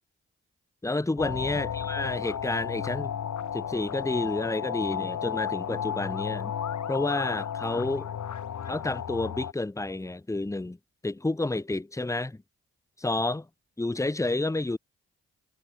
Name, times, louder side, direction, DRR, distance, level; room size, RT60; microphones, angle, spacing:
voice 1, 0.8-3.1 3.5-6.6 6.9-8.1 8.7-10.8 11.0-12.4 13.0-13.5 13.8-14.8, left 2 dB, 10° left, 0.9 m, -30 dB
sound 1, 1.2-9.5, left 8 dB, 65° left, 2.2 m, -33 dB
supercardioid pair, 40°, 32 cm